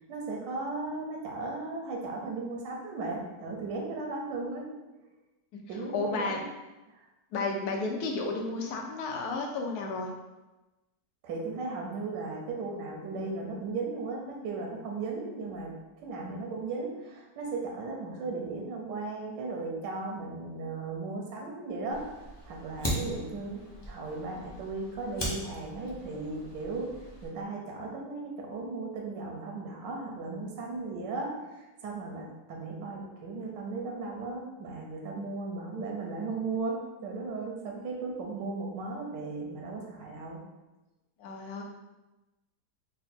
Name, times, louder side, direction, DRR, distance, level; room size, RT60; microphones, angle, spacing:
voice 1, 0.1-4.7 5.7-6.5 6.9-7.0 11.2-22.0 22.5-23.6 23.9-26.9 27.2-31.3 31.6-40.4, right 3 dB, 85° right, 0 dB, 1.4 m, -36 dB
voice 2, 5.9-6.4 7.3-10.1 41.2-41.6, left 3 dB, 70° left, 1 dB, 1.1 m, -32 dB
Fire, 21.9-27.3, equal, 35° left, 0.4 m, -39 dB
4.0 x 2.2 x 4.2 m, 1.1 s
omnidirectional pair, 1.9 m